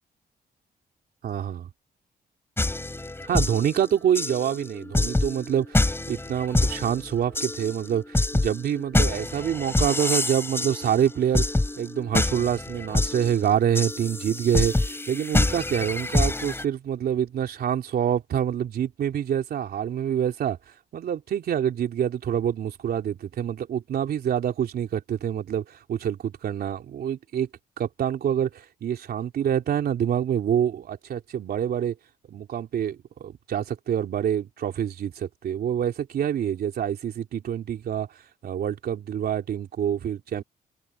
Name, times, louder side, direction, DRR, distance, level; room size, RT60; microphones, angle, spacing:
voice 1, 1.2-1.7 3.2-11.4 11.8-20.6 20.9-27.5 27.8-31.9 32.3-38.1 38.4-40.4, right 9 dB, 75° right, 3.5 m, -26 dB
sound 1, 2.6-16.6, left 2 dB, 15° left, 6.7 m, -27 dB
cardioid pair, 105°, 16 cm